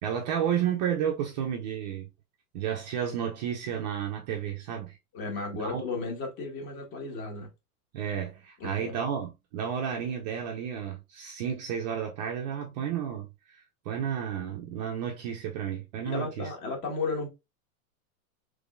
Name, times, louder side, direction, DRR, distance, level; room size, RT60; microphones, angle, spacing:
voice 1, 0.0-2.1 2.5-5.0 5.5-5.8 7.9-16.5, right 8 dB, 30° right, 0.4 m, -32 dB
voice 2, 5.1-7.5 8.6-9.1 16.0-17.3, left 3 dB, 40° left, 1.5 m, -34 dB
3.6 x 3.2 x 2.4 m
supercardioid pair, 145°, 45 cm